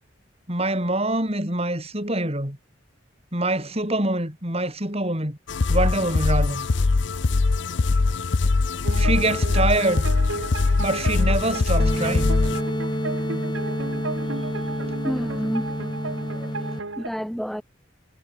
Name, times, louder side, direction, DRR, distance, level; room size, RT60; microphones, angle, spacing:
voice 1, 0.5-2.6 3.3-5.4 5.7-6.7 9.0-10.1 10.8-12.3, right 2 dB, 30° right, 7.3 m, -25 dB
sound 1, 5.5-12.6, left 3 dB, 65° left, 0.6 m, -22 dB
sound 2, 8.8-17.1, right 3 dB, 80° right, 3.2 m, -34 dB
sound 3, 11.8-16.8, equal, 25° left, 5.9 m, -28 dB
voice 2, 15.0-15.7 16.3-16.7 17.0-17.6, equal, ahead, 3.4 m, -30 dB
head